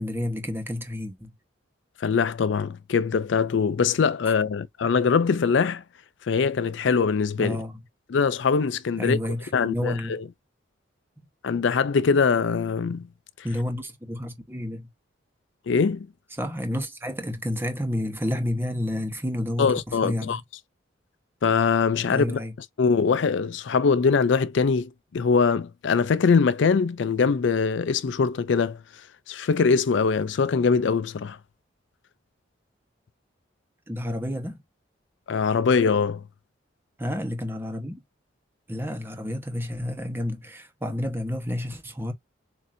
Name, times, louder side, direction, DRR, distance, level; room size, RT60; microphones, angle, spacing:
voice 1, 0.0-1.3 4.3-4.4 7.4-7.8 9.0-10.2 11.2-11.3 13.4-14.9 16.3-20.4 22.1-22.5 33.9-34.6 37.0-38.0 38.7-42.1, left 1 dB, 10° right, 1.0 m, -30 dB
voice 2, 2.0-5.8 6.3-7.6 8.1-9.2 9.5-10.2 11.4-13.1 15.7-16.1 19.6-20.4 21.4-22.4 22.8-28.8 29.3-31.4 35.3-36.2, left 5 dB, 65° left, 0.4 m, -22 dB
7.4 x 2.7 x 2.6 m
head